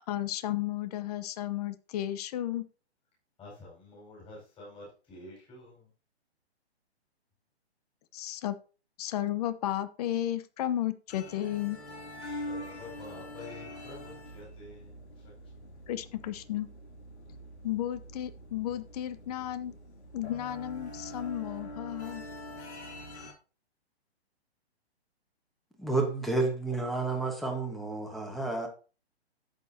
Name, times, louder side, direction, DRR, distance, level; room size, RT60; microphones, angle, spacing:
voice 1, 0.1-2.7 8.1-8.6 9.0-11.8 15.9-16.7 17.6-19.7 20.1-22.2, left 12 dB, 35° left, 0.8 m, -33 dB
voice 2, 3.4-5.9 12.5-15.0, left 2 dB, 15° left, 5.3 m, -48 dB
sound 1, 11.1-23.3, left 1 dB, 75° left, 3.2 m, -44 dB
voice 3, 25.8-28.7, right 3 dB, ahead, 1.4 m, -30 dB
11.0 x 8.2 x 2.8 m
hypercardioid pair, 140°, 33 cm